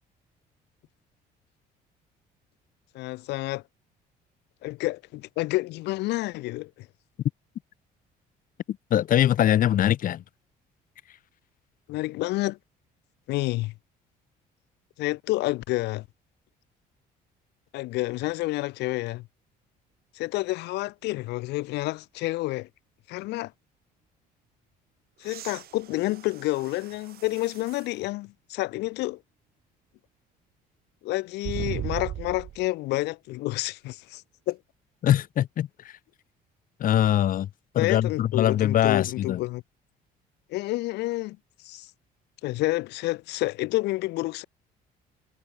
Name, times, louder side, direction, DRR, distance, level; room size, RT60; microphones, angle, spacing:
voice 1, 2.9-3.6 4.6-6.9 11.9-12.6 13.3-13.7 15.0-16.0 17.7-19.3 20.1-22.7 23.1-23.5 25.2-29.2 31.0-34.6 37.8-39.6 40.5-41.4 41.6-41.9 42.4-44.4, left 19 dB, 85° left, 4.5 m, -29 dB
voice 2, 8.7-10.2 35.0-35.9 36.8-37.5 37.7-39.4, left 11 dB, 55° left, 1.1 m, -22 dB
sound 1, 25.2-28.0 28.6-28.7 31.4-32.7 34.5-34.6, right 12 dB, 65° right, 6.4 m, -37 dB
cardioid pair, 110°, 17 cm